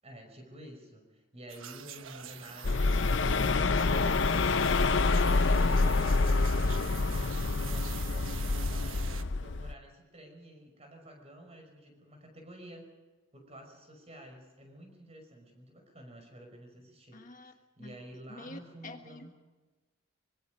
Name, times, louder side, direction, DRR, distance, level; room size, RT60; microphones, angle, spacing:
voice 1, 0.0-6.8 7.1-12.9 13.3-19.3, equal, 30° right, 4 dB, 5.7 m, -50 dB
sound 1, 1.5-9.2, right 9 dB, 75° right, 1.2 m, -46 dB
sound 2, 2.6-9.7, left 3 dB, 60° left, 0.7 m, -27 dB
voice 2, 17.1-17.5 17.8-18.0 18.3-19.3, left 2 dB, 40° left, 5 dB, 1.4 m, -47 dB
24.5 x 22.5 x 5.3 m, 1.2 s
head